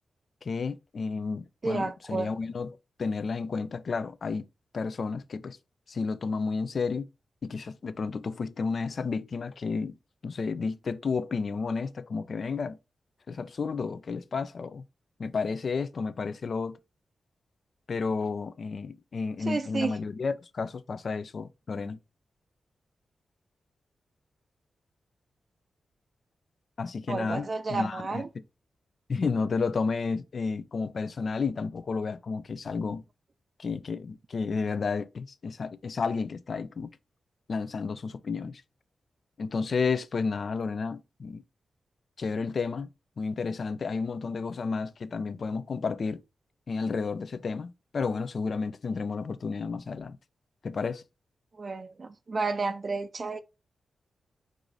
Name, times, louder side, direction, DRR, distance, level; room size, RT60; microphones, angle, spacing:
voice 1, 0.4-4.5 4.7-5.6 5.9-7.1 7.4-10.0 10.2-12.8 13.3-14.8 15.2-16.8 17.9-22.0 26.8-28.2 29.1-33.0 33.6-36.9 37.5-38.6 39.4-41.4 42.2-42.9 43.2-46.2 46.7-50.2 50.6-51.0, left 4 dB, 60° left, 0.4 m, -31 dB
voice 2, 1.6-2.3 19.4-20.0 27.1-28.3 51.5-53.4, right 3 dB, 50° right, 0.4 m, -31 dB
4.7 x 2.6 x 3.9 m
cardioid pair, 55°, 0 cm